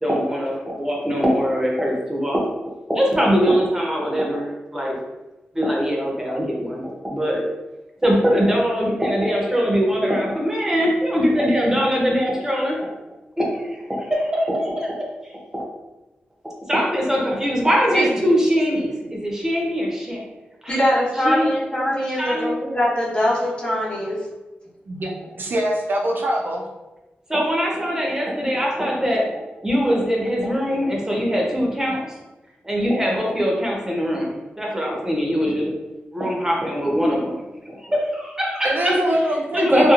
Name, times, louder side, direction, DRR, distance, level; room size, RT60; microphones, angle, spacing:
voice 1, 0.0-2.4 2.9-4.9 5.5-7.4 8.0-12.9 13.4-15.6 16.7-20.2 20.6-20.8 21.2-21.5 22.2-22.5 27.3-29.2 29.6-32.1 32.6-35.7 36.1-37.4 37.7-38.9 39.5-39.9, equal, 15° right, -2 dB, 0.7 m, -22 dB
voice 2, 20.7-24.2, equal, 35° left, -7 dB, 1.0 m, -22 dB
voice 3, 25.4-26.6 38.6-39.9, right 1 dB, 65° right, -1 dB, 0.5 m, -23 dB
2.9 x 2.3 x 2.4 m, 1.1 s
wide cardioid pair, 85°, 4 cm